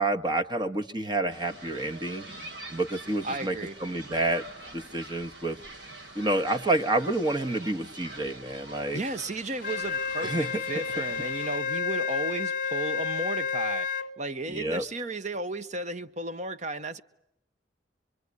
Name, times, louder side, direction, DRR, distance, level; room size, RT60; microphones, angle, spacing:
voice 1, 0.0-2.2 2.7-4.4 4.7-5.6 6.1-9.0 10.2-10.6 14.5-14.8, right 2 dB, 25° right, 1.3 m, -28 dB
sound 1, 1.3-11.6, right 2 dB, 80° right, 5.2 m, -45 dB
voice 2, 3.2-3.7 8.9-13.9 14.2-17.0, right 2 dB, 40° right, 1.0 m, -34 dB
Wind instrument woodwind instrument, 9.6-14.1, left 6 dB, 50° left, 1.1 m, -30 dB
25.0 x 23.5 x 9.6 m
head